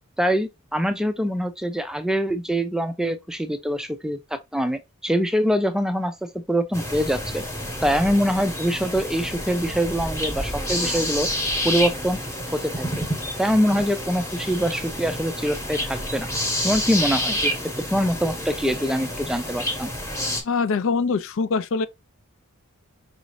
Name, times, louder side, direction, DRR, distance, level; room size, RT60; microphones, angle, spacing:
voice 1, 0.2-7.4 7.8-11.3 11.6-12.2 12.5-13.1 13.4-16.3 16.6-17.5 17.8-19.9, equal, 5° right, 0.3 m, -24 dB
sound 1, 6.7-20.4, equal, 15° left, 0.9 m, -29 dB
voice 2, 20.4-21.9, left 4 dB, 65° left, 0.4 m, -23 dB
4.9 x 2.7 x 3.0 m
head